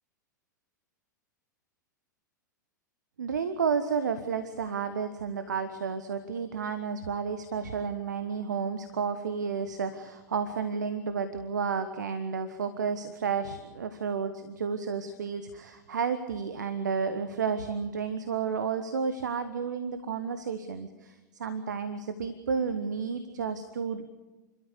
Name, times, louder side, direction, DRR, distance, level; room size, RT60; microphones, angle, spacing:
voice 1, 3.2-24.0, right 6 dB, 65° right, 11 dB, 1.3 m, -31 dB
30.0 x 13.0 x 8.2 m, 1.2 s
figure-of-eight pair, 95°, 10 cm